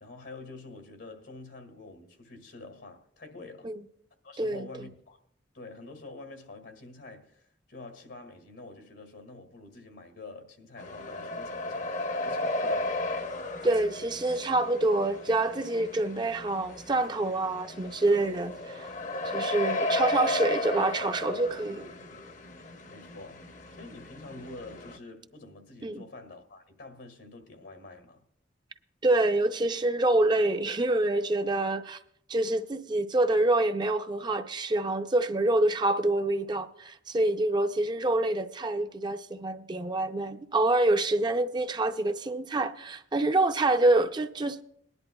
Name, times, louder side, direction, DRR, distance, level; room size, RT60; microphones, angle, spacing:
voice 1, 0.0-3.7 4.2-5.2 5.5-7.4 7.7-12.0 12.2-13.0 22.9-28.2, left 2 dB, 90° left, 1.9 m, -47 dB
sound 1, 10.8-25.0, left 2 dB, 40° left, 0.7 m, -34 dB
voice 2, 13.6-18.9 19.2-21.9 25.8-26.0 29.0-32.0 32.3-44.6, right 2 dB, 25° right, 0.5 m, -26 dB
21.5 x 10.5 x 2.2 m
head